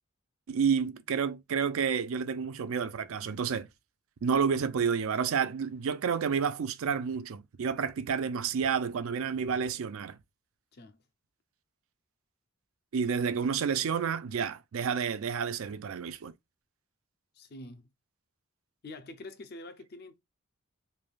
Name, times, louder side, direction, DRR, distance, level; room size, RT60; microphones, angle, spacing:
voice 1, 0.5-3.7 4.2-10.2 12.9-16.3, right 6 dB, 70° right, 0.4 m, -30 dB
voice 2, 17.3-17.9 18.8-20.2, left 2 dB, 45° left, 0.5 m, -46 dB
3.2 x 2.2 x 2.4 m
head